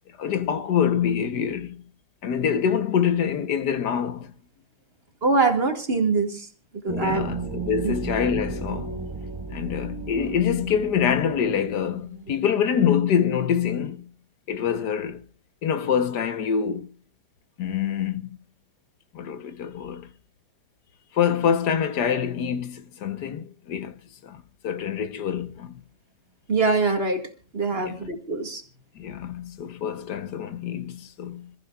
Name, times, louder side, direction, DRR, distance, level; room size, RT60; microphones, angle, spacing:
voice 1, 0.2-1.8 2.2-4.3 6.9-9.1 9.5-14.1 14.5-15.2 15.6-16.9 17.6-18.4 19.1-20.1 21.1-25.8 27.7-28.0 28.9-31.5, left 8 dB, 80° left, 1.6 m, -25 dB
voice 2, 5.2-6.5 6.8-7.3 7.8-7.9 26.5-28.6, right 3 dB, 35° right, 2.1 m, -23 dB
sound 1, 6.9-12.3, right 4 dB, 15° right, 1.9 m, -34 dB
27.0 x 14.5 x 2.4 m
omnidirectional pair, 1.7 m